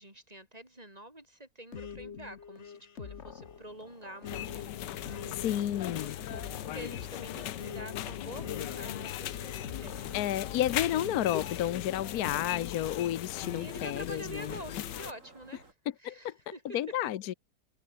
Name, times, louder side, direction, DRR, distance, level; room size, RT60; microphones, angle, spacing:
voice 1, 0.0-10.6 13.5-16.8, right 1 dB, 20° right, 7.0 m, -48 dB
sound 1, 1.7-12.8 13.4-15.0, left 7 dB, 45° left, 1.4 m, -45 dB
sound 2, 3.1-15.7, right 3 dB, 45° right, 4.4 m, -59 dB
sound 3, 4.3-15.1, left 12 dB, 90° left, 1.5 m, -38 dB
voice 2, 5.3-6.2 10.1-14.5 16.0-16.3 16.7-17.3, left 12 dB, 65° left, 1.2 m, -31 dB
omnidirectional pair, 1.8 m